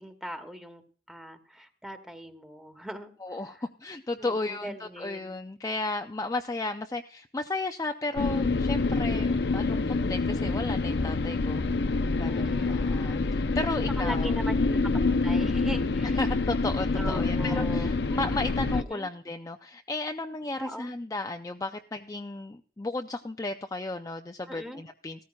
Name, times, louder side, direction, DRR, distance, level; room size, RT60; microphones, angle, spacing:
voice 1, 0.0-3.6 4.2-5.4 12.2-13.2 13.7-16.2 17.0-17.9 18.7-19.1 20.6-20.9 24.5-24.8, equal, 5° right, 7 dB, 1.2 m, -40 dB
voice 2, 3.2-11.6 12.1-14.3 16.2-25.2, left 2 dB, 20° left, 6 dB, 0.4 m, -34 dB
sound 1, 8.2-18.8, left 3 dB, 65° left, 0.6 m, -27 dB
16.5 x 14.0 x 2.3 m, 0.43 s
head